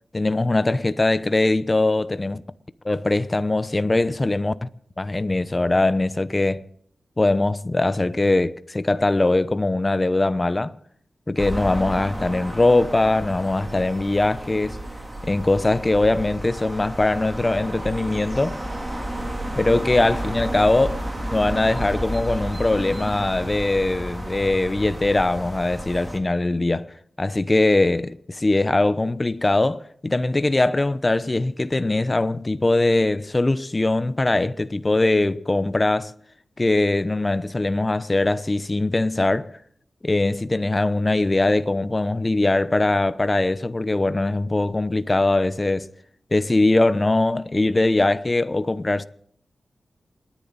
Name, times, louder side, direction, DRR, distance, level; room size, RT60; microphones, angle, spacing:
voice 1, 0.1-2.4 2.8-4.7 5.0-6.6 7.2-10.7 11.3-14.8 15.2-18.6 19.6-21.0 21.3-26.9 27.2-36.1 36.6-39.5 40.0-45.9 46.3-49.0, left 2 dB, 30° left, 0.8 m, -21 dB
sound 1, 11.4-26.2, right 1 dB, 15° right, 3.0 m, -32 dB
28.5 x 10.5 x 4.1 m
cardioid pair, 65°, 0 cm